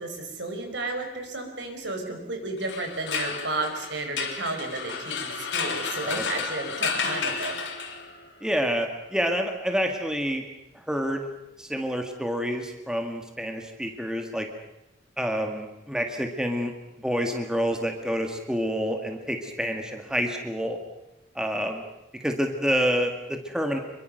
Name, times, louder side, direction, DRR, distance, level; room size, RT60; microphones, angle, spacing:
voice 1, 0.0-7.6, right 2 dB, 75° right, 4 dB, 5.1 m, -32 dB
sound 1, 2.6-8.3, left 5 dB, 85° left, 3.6 m, -32 dB
voice 2, 6.0-6.5 8.4-10.4 10.9-11.3 11.6-14.5 15.2-16.7 17.0-20.8 21.4-21.8 22.2-23.8, equal, 5° right, 4 dB, 1.9 m, -28 dB
26.0 x 22.5 x 6.6 m, 0.93 s
head